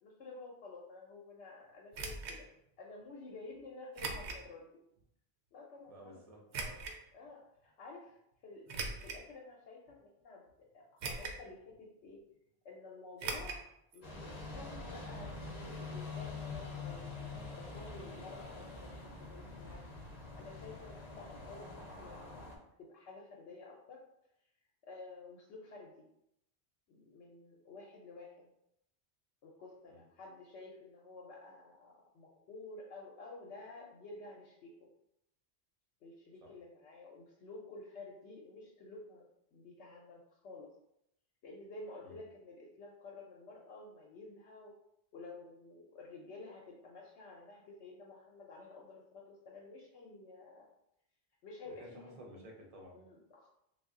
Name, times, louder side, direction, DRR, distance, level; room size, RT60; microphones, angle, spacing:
voice 1, 0.0-2.5 2.8-4.7 5.5-6.2 7.1-12.2 12.6-13.6 13.9-19.8 20.3-22.4 22.8-24.0 24.8-25.9 26.9-28.5 29.4-34.9 36.0-39.2 39.5-40.7 41.4-44.7 45.1-50.7 51.4-52.4 52.9-53.5, left 3 dB, 80° left, -3 dB, 0.9 m, -51 dB
sound 1, 1.9-2.4 4.0-4.5 5.0-5.1 6.5-7.0 8.7-9.3 9.9-10.0 11.0-11.5 11.7-11.8 13.2-13.6 13.9-14.0 14.3-14.4, right 4 dB, 85° right, 0.9 m, -40 dB
voice 2, 5.9-7.0 29.9-30.1 42.0-42.2 51.8-53.0, equal, 40° right, 0 dB, 0.6 m, -54 dB
sound 2, 14.0-22.6, left 3 dB, 45° left, 0.7 m, -45 dB
3.3 x 2.3 x 3.6 m, 0.78 s
omnidirectional pair, 1.1 m